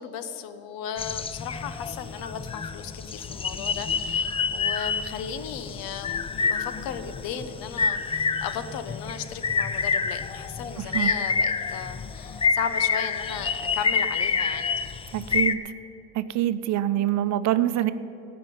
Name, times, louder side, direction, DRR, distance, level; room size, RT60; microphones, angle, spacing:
voice 1, 0.0-14.7, left 8 dB, 90° left, 11 dB, 1.0 m, -36 dB
sound 1, 1.0-15.5, left 5 dB, 20° left, 0.4 m, -28 dB
voice 2, 10.8-11.1 15.1-15.7 16.1-17.9, right 13 dB, 55° right, 12 dB, 0.7 m, -25 dB
16.5 x 6.0 x 9.3 m, 3.0 s
cardioid pair, 150°, 33 cm